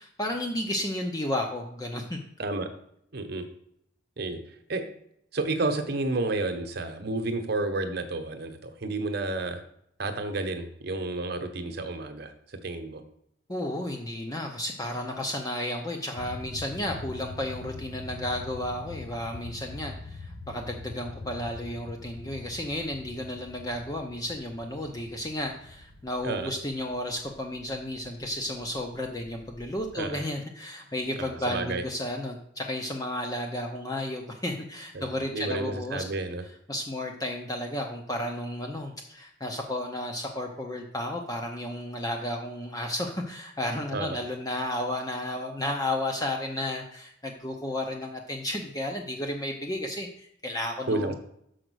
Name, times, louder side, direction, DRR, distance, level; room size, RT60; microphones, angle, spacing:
voice 1, 0.0-2.2 13.5-36.1 36.4-51.1, left 1 dB, 20° left, 2 dB, 0.7 m, -33 dB
voice 2, 3.1-3.4 4.2-4.4 4.7-4.8 5.3-9.6 10.0-13.0 26.2-26.5 29.9-30.2 31.2-31.8 34.9-35.0 35.3-36.4 43.9-44.2 50.9-51.1, right 2 dB, 55° right, 7 dB, 1.0 m, -31 dB
sound 1, 16.2-30.1, left 3 dB, 65° left, 1.0 m, -44 dB
6.4 x 5.0 x 6.3 m, 0.71 s
head